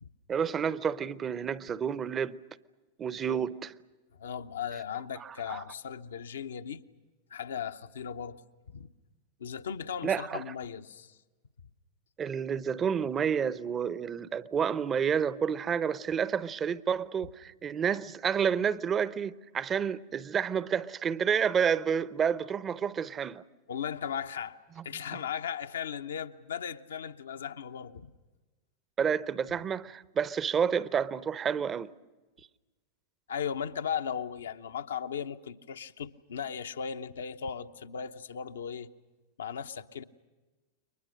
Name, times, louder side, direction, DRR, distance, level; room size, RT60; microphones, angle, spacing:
voice 1, 0.3-2.4 3.0-3.7 5.2-5.6 10.0-10.4 12.2-23.4 29.0-31.9, right 7 dB, 25° right, 0.7 m, -30 dB
voice 2, 4.2-6.8 7.3-8.4 8.7-8.9 9.4-11.2 23.7-24.6 24.8-28.1 33.3-38.9 39.4-40.0, left 7 dB, 65° left, 0.9 m, -37 dB
29.5 x 23.5 x 6.5 m
figure-of-eight pair, 90°, 0 cm